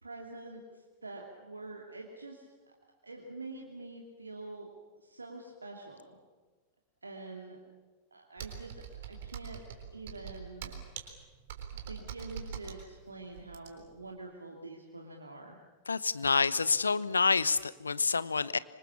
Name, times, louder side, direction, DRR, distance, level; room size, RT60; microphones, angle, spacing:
voice 1, 0.0-2.7 3.0-4.7 5.0-6.2 7.0-7.6 8.1-8.8 9.1-9.6 9.9-10.8 11.9-15.6, right 2 dB, 80° right, 0 dB, 2.6 m, -46 dB
Computer keyboard, 8.4-14.0, right 8 dB, 55° right, 3.9 m, -43 dB
voice 2, 15.9-18.6, left 4 dB, 75° left, 17 dB, 0.9 m, -28 dB
25.5 x 25.5 x 7.2 m, 1.3 s
figure-of-eight pair, 90°, 0 cm